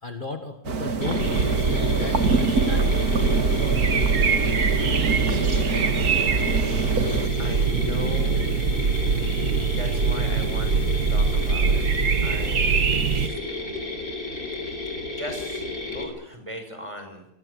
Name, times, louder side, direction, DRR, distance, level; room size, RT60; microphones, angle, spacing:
voice 1, 0.0-4.0, left 3 dB, 35° left, 7 dB, 1.8 m, -36 dB
sound 1, 0.6-7.3, right 4 dB, 85° right, 2.4 m, -27 dB
Mechanisms, 1.0-16.0, left 3 dB, 75° left, 5.7 m, -32 dB
sound 2, 1.2-13.3, right 5 dB, 60° right, 1.6 m, -23 dB
voice 2, 7.4-8.6 9.7-11.9 12.2-14.1 15.0-17.3, equal, 20° right, 6 dB, 6.0 m, -39 dB
27.5 x 22.0 x 8.3 m, 0.72 s
omnidirectional pair, 1.6 m